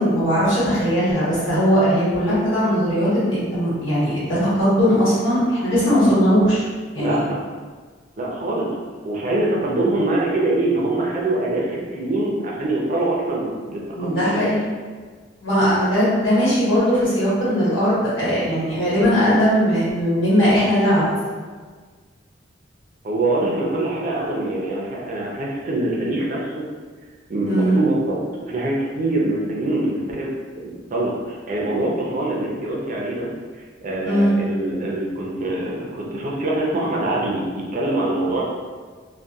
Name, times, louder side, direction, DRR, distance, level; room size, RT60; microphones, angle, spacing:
voice 1, 0.0-6.6 6.9-7.2 14.0-14.6 15.4-21.1 27.4-27.7 34.0-34.3, equal, 85° left, -10 dB, 1.4 m, -19 dB
voice 2, 7.0-7.4 8.2-8.7 9.0-14.4 23.0-26.7 27.3-30.3 30.5-33.3 33.8-38.4, right 2 dB, 45° right, -3 dB, 0.5 m, -24 dB
2.7 x 2.2 x 2.3 m, 1.5 s
head